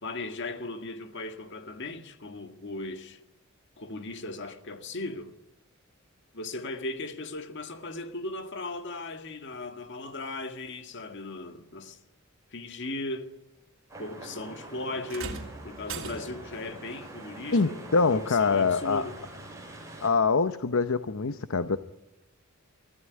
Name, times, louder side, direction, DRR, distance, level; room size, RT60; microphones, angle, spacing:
voice 1, 0.0-3.2 3.8-5.3 6.3-12.0 12.5-13.3 14.0-19.2, left 2 dB, 60° left, 1.9 m, -37 dB
sound 1, 13.9-20.1, right 2 dB, 15° right, 7.8 m, -45 dB
sound 2, 15.1-16.6 18.1-18.2 19.1-19.2, right 4 dB, 70° right, 3.2 m, -39 dB
voice 2, 17.5-19.0 20.0-21.8, left 4 dB, 75° left, 0.8 m, -24 dB
24.0 x 15.0 x 9.4 m
head